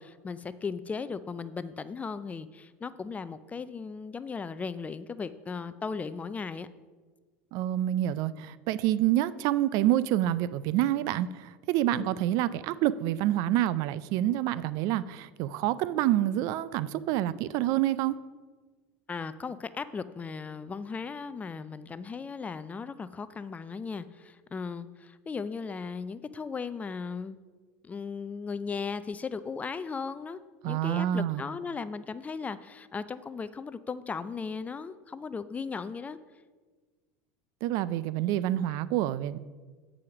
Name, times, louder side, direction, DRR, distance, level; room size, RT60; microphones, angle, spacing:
voice 1, 0.0-6.7 11.9-12.1 19.1-27.4 27.8-30.4 30.6-36.2, left 5 dB, 20° left, 14 dB, 0.4 m, -37 dB
voice 2, 7.5-18.2 30.6-31.4 37.6-39.4, right 13 dB, 60° right, 17 dB, 0.4 m, -27 dB
8.6 x 4.9 x 5.8 m, 1.4 s
supercardioid pair, 95°, 7 cm